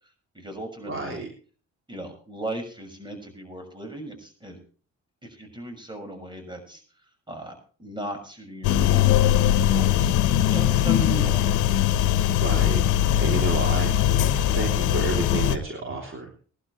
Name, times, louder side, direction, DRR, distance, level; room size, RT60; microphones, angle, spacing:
voice 1, 0.3-1.3 1.9-4.6 5.2-6.8 7.3-7.5 7.8-10.1 10.5-11.4, right 1 dB, 15° right, 5 dB, 6.4 m, -37 dB
voice 2, 0.9-1.3 12.4-13.9 14.6-16.3, right 3 dB, 45° right, 1 dB, 3.5 m, -30 dB
sound 1, 8.6-15.6, left 11 dB, 90° left, 1.3 m, -21 dB
20.5 x 12.0 x 3.3 m, 0.41 s
cardioid pair, 90°, 30 cm